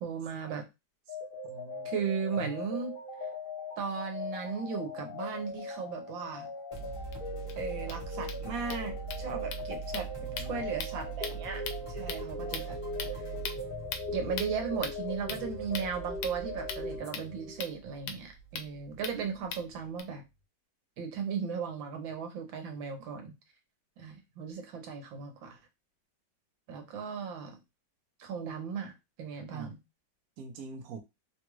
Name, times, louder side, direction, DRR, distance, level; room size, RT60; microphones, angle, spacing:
voice 1, 0.0-0.6 1.8-3.0 3.8-6.5 7.6-10.1 10.4-11.6 11.9-12.8 13.1-13.2 14.1-20.2 21.0-23.3 24.0-25.6 26.7-27.6 28.2-28.9 29.2-29.8, right 6 dB, 85° right, 1.6 m, -36 dB
sound 1, 1.1-17.7, left 2 dB, 50° left, 0.6 m, -40 dB
voice 2, 1.4-1.9 10.2-10.7 29.5-29.7 30.4-31.0, right 4 dB, 65° right, 1.0 m, -44 dB
sound 2, 6.7-20.1, right 6 dB, 25° left, 0.8 m, -43 dB
sound 3, 6.8-6.9 7.1-7.2 7.5-7.6 7.8-20.0, left 6 dB, 75° left, 1.2 m, -43 dB
3.5 x 2.4 x 3.0 m
omnidirectional pair, 2.0 m